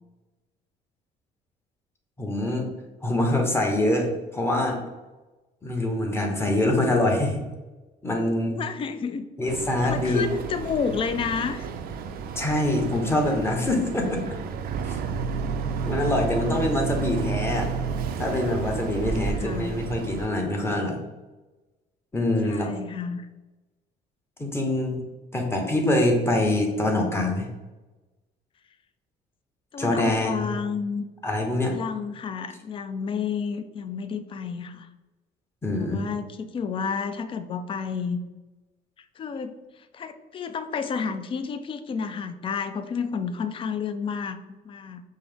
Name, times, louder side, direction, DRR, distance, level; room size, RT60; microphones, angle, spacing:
voice 1, 2.2-2.7 3.0-4.8 5.6-7.4 8.0-8.6 9.4-10.2 12.4-14.3 14.9-15.0 15.9-17.7 18.2-21.0 22.1-22.7 24.4-25.0 25.3-27.5 29.8-30.5 31.2-31.7 35.6-36.1, left 1 dB, 15° left, 1 dB, 0.8 m, -24 dB
voice 2, 8.5-9.3 9.8-11.7 19.0-19.7 22.5-23.3 29.7-31.0 31.7-34.9 35.8-38.2 39.2-45.0, left 6 dB, 30° left, 10 dB, 0.3 m, -31 dB
Boat Water vehicle, 9.5-20.3, right 5 dB, 65° right, 0.4 m, -31 dB
5.4 x 2.0 x 3.4 m, 1.1 s
cardioid pair, 110°, 17 cm